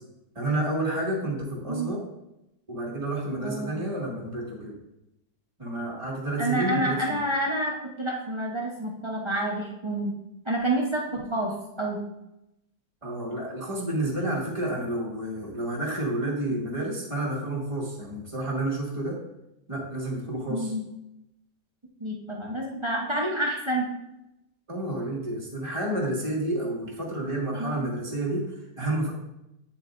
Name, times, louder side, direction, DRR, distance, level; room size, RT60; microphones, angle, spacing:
voice 1, 0.4-2.0 2.7-4.8 5.6-7.2 13.0-19.2 19.7-20.7 24.7-28.5 28.8-29.1, right 1 dB, 15° right, -4 dB, 1.9 m, -30 dB
voice 2, 3.4-3.7 6.4-10.1 10.5-12.0 16.5-16.6 20.5-20.8 22.0-23.9 27.6-27.8, right 1 dB, 35° right, -2 dB, 0.4 m, -28 dB
9.1 x 7.4 x 2.5 m, 0.88 s
omnidirectional pair, 2.0 m